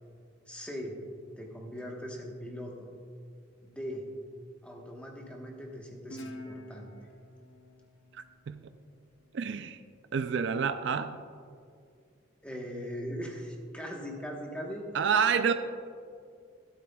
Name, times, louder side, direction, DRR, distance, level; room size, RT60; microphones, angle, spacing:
voice 1, 0.5-0.9 1.4-2.9 3.6-4.0 4.6-6.9 12.4-14.8 15.5-15.6, equal, 5° left, 0 dB, 1.1 m, -40 dB
Guitar, 6.1-9.3, left 1 dB, 65° left, 0.8 m, -47 dB
voice 2, 9.3-9.8 10.1-11.2 14.9-15.5, right 6 dB, 60° right, 9 dB, 0.3 m, -28 dB
12.5 x 12.0 x 2.3 m, 2.3 s
head